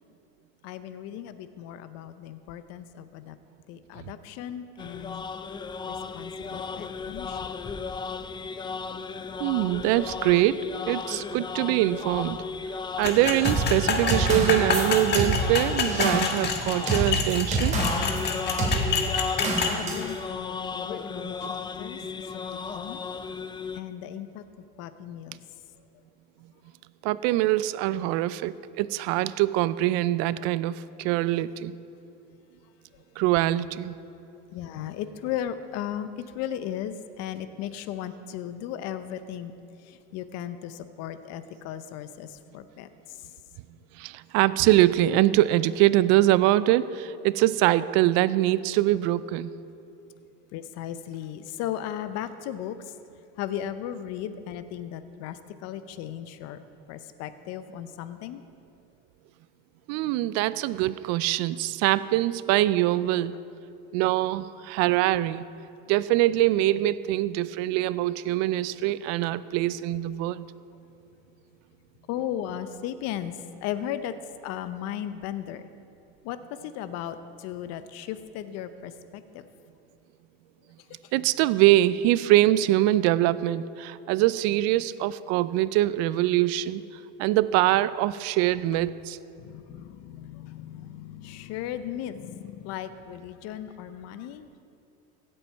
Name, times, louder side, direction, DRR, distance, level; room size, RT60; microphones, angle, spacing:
voice 1, 0.6-3.4 3.7-5.3 5.9-7.4 19.4-22.0 22.3-23.0 23.7-24.4 24.8-25.4 34.5-39.6 39.9-42.9 50.5-52.8 53.4-56.6 56.9-58.4 72.1-73.3 73.6-74.1 74.4-75.7 76.2-76.4 76.6-79.4 89.4-94.5, left 10 dB, 60° left, 12 dB, 0.8 m, -36 dB
sound 1, 4.8-23.8, left 5 dB, 15° left, 0.4 m, -35 dB
voice 2, 9.4-12.4 13.0-17.8 27.0-31.7 33.2-34.0 44.0-49.5 59.9-63.3 63.9-65.5 65.9-70.5 81.1-86.8 87.2-89.2, right 15 dB, 60° right, 17 dB, 0.5 m, -23 dB
sound 2, 13.0-19.8, left 5 dB, 35° left, 1.5 m, -28 dB
sound 3, 13.4-18.2 18.6-18.8 19.4-20.1, right 3 dB, 25° right, 3.1 m, -27 dB
16.0 x 7.8 x 4.5 m, 2.6 s
supercardioid pair, 105°, 29 cm